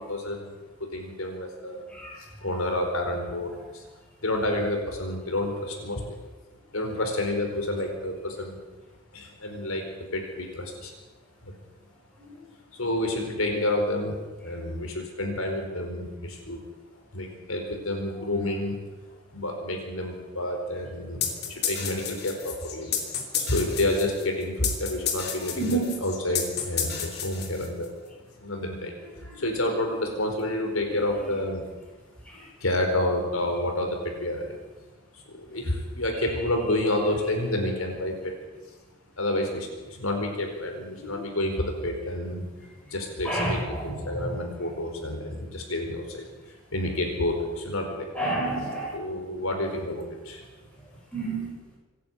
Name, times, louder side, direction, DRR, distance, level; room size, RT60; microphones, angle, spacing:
voice 1, 0.0-1.8 2.2-3.8 4.2-6.0 6.7-8.6 9.1-10.9 11.4-11.5 12.7-16.6 17.1-18.8 19.3-22.9 23.4-27.9 28.4-31.6 32.6-34.6 35.1-38.4 39.2-42.4 42.9-46.2 46.7-48.1 48.9-50.4, left 1 dB, 80° left, 3 dB, 4.6 m, -29 dB
voice 2, 1.9-2.5 12.2-12.4 25.5-25.9 29.2-29.4 32.3-32.5 40.9-41.2 43.2-44.3 48.1-49.0 51.1-51.5, right 2 dB, 5° left, -3 dB, 7.3 m, -30 dB
sound 1, 21.2-27.9, left 8 dB, 50° left, 3.2 m, -31 dB
26.5 x 11.0 x 9.2 m, 1.2 s
head